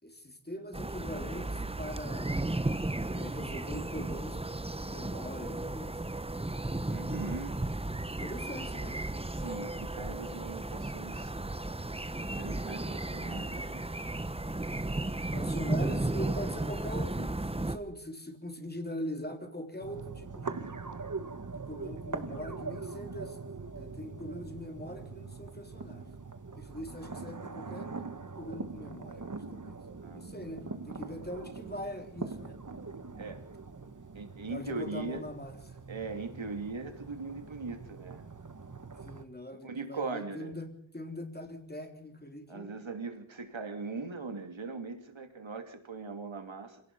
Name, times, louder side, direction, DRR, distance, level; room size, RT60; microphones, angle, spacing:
voice 1, 0.0-2.3 3.1-4.4 4.8-6.1 8.2-9.0 15.3-20.7 21.5-23.4 23.8-26.0 26.6-28.1 28.4-29.8 30.1-32.6 34.5-35.8 39.0-42.8, equal, 20° left, 5 dB, 3.6 m, -42 dB
sound 1, 0.7-17.8, right 2 dB, 10° right, 0.9 m, -34 dB
voice 2, 6.9-7.6 9.3-11.3 12.1-13.8 15.8-16.1 30.0-31.0 33.2-33.5 34.1-35.2 35.9-38.2 39.6-40.6 42.5-46.8, right 4 dB, 75° right, 7 dB, 2.9 m, -40 dB
sound 2, 19.8-39.2, right 4 dB, 40° right, 1.5 m, -43 dB
26.5 x 17.5 x 5.6 m, 0.64 s
wide cardioid pair, 75°, 47 cm